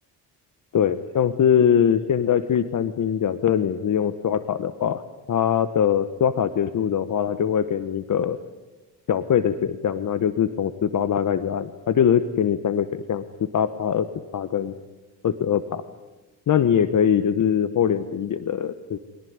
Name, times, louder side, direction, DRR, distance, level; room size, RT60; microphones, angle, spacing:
voice 1, 0.7-5.0 5.3-8.4 9.1-13.2 13.5-14.1 14.3-14.7 15.2-15.8 16.5-19.0, left 8 dB, 50° left, 12 dB, 1.1 m, -22 dB
24.5 x 18.5 x 9.5 m, 1.1 s
cardioid pair, 90°, 39 cm